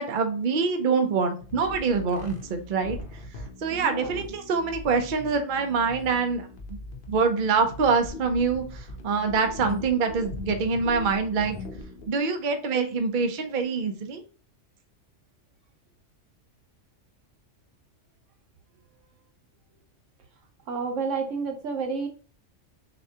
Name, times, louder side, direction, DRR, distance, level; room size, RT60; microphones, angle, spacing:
voice 1, 0.0-3.0 3.6-6.5 7.1-11.6 12.1-14.2, right 5 dB, 50° right, 6 dB, 0.7 m, -25 dB
sound 1, 1.4-12.1, left 2 dB, 50° left, 0.9 m, -40 dB
voice 2, 3.7-4.2 20.7-22.1, right 5 dB, 80° right, 4 dB, 1.2 m, -30 dB
6.5 x 2.3 x 2.7 m, 0.38 s
omnidirectional pair, 1.3 m